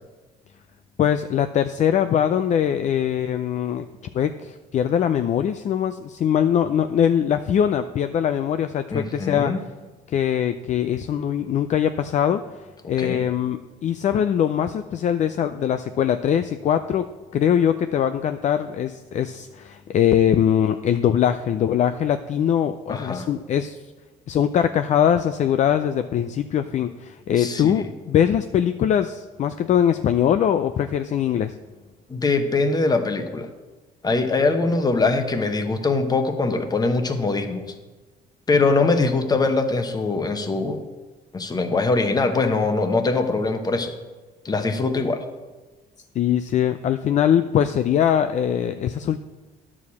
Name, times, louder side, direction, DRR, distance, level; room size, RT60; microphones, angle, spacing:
voice 1, 1.0-3.9 4.1-9.5 10.1-12.4 12.9-23.8 24.3-31.6 46.2-49.2, left 9 dB, 45° left, 10 dB, 0.4 m, -22 dB
voice 2, 8.9-9.6 13.0-13.2 22.9-23.3 27.4-27.9 32.1-33.5 34.0-37.7 38.5-40.8 41.3-43.9 44.4-45.2, left 3 dB, 25° left, 7 dB, 1.0 m, -22 dB
10.0 x 4.8 x 7.1 m, 1.2 s
cardioid pair, 110°, 17 cm